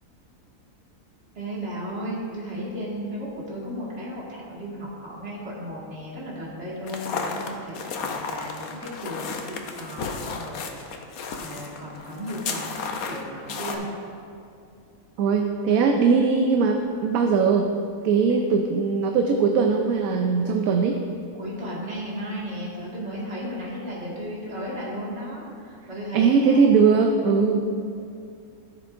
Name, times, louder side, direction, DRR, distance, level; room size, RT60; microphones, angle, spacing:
voice 1, 1.4-11.1 11.4-13.9 21.3-27.0 27.4-27.6, equal, 50° right, -6 dB, 2.3 m, -35 dB
sound 1, 6.8-13.8, left 5 dB, 75° left, 1.2 m, -33 dB
voice 2, 15.2-17.7 18.0-21.0 26.1-27.6, right 5 dB, 75° right, 3 dB, 1.0 m, -20 dB
14.0 x 6.9 x 2.5 m, 2.5 s
omnidirectional pair, 1.6 m